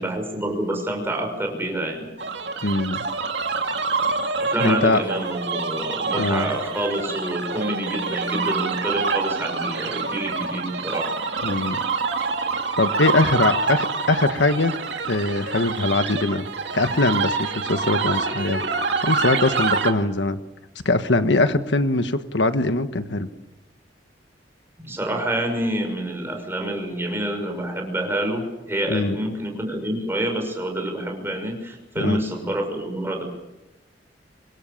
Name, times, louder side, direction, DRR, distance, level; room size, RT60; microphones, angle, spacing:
voice 1, 0.0-2.1 4.4-11.1 24.8-33.2, right 1 dB, 15° right, 3 dB, 6.2 m, -27 dB
sound 1, 2.2-19.9, right 4 dB, 75° right, 2.4 m, -26 dB
voice 2, 2.6-3.0 4.6-5.0 6.1-6.5 11.4-11.8 12.8-14.7 15.1-16.5 16.7-18.6 19.0-20.4 20.8-23.3 28.9-29.2 32.0-32.2, left 2 dB, 80° left, 9 dB, 1.4 m, -22 dB
26.0 x 22.5 x 7.3 m, 1.0 s
head